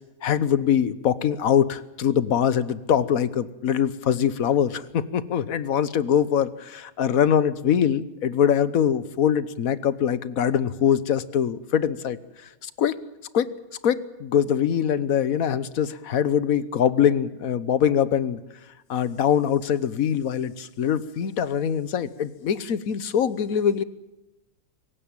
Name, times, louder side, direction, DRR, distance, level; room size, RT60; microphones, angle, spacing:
voice 1, 0.2-12.2 12.6-13.0 13.3-13.5 13.8-18.4 18.9-23.8, left 8 dB, 75° left, 15 dB, 1.4 m, -23 dB
25.0 x 16.0 x 9.1 m, 0.98 s
omnidirectional pair, 1.5 m